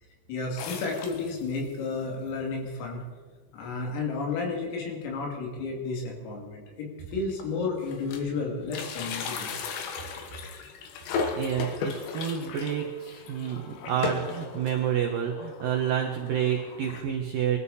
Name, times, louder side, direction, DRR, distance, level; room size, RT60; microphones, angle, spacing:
voice 1, 0.3-3.0 3.5-9.6, left 4 dB, 85° left, 0 dB, 5.4 m, -32 dB
sound 1, 0.6-1.7 2.3-2.4 2.6-2.7 3.5-3.7 4.0-4.2 4.6-4.7 5.9-6.0 6.7-6.8 7.1-8.4 8.6-17.0, left 5 dB, 70° left, 3.2 m, -36 dB
voice 2, 11.4-17.6, right 9 dB, 80° right, 2 dB, 2.0 m, -29 dB
23.0 x 13.5 x 4.2 m, 1.5 s
omnidirectional pair, 5.9 m